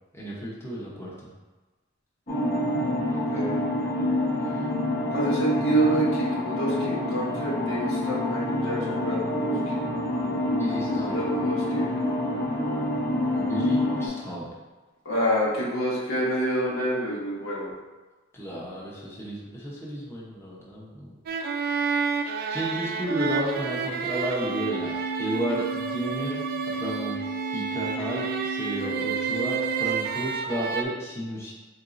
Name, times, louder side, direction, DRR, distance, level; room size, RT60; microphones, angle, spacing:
voice 1, 0.1-1.3 10.4-11.2 13.3-14.5 18.3-21.1 22.5-27.2 27.5-31.5, right 1 dB, 15° left, -6 dB, 0.8 m, -32 dB
sound 1, 2.3-14.1, left 1 dB, 50° left, 1.0 m, -27 dB
voice 2, 5.1-9.7 11.1-11.9 15.0-17.7, right 1 dB, 80° left, -6 dB, 1.3 m, -27 dB
sound 2, 21.3-30.8, right 6 dB, 50° right, 0.4 m, -30 dB
Organ, 24.4-30.4, right 3 dB, 35° left, 0.4 m, -34 dB
4.3 x 3.9 x 2.5 m, 1.2 s
head